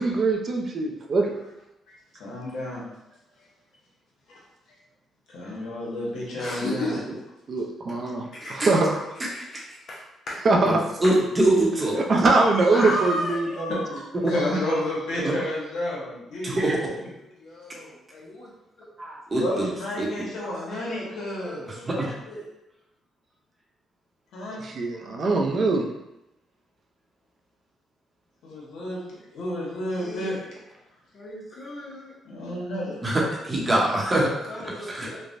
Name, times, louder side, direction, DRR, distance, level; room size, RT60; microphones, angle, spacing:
voice 1, 0.0-1.3 7.5-8.2 8.5-8.9 10.4-10.8 12.1-13.7 24.5-25.8, right 3 dB, 50° right, 2 dB, 0.4 m, -22 dB
voice 2, 2.2-2.8 4.3-4.4 5.3-7.0 12.7-13.0 13.7-16.6 19.4-21.7 24.3-24.6 28.4-30.4 32.2-33.0, left 1 dB, 75° left, -5 dB, 1.0 m, -31 dB
voice 3, 6.4-7.0 8.3-8.6 9.5-9.6 9.9-10.0 10.3-10.4 11.9-12.0 12.7-13.9 17.5-17.9 18.1-18.5 20.7-21.9 22.3-22.4 25.1-25.5 30.0-30.3 31.1-32.1 34.5-35.2, left 1 dB, 60° left, -4 dB, 0.6 m, -33 dB
voice 4, 8.4-9.3 10.6-12.3 14.2-14.3 15.2-15.3 16.4-16.8 19.0-19.7 20.0-20.1 21.9-22.2 33.0-35.1, right 1 dB, 25° right, -3 dB, 0.8 m, -24 dB
3.1 x 2.1 x 2.5 m, 0.90 s
cardioid pair, 90°, 0 cm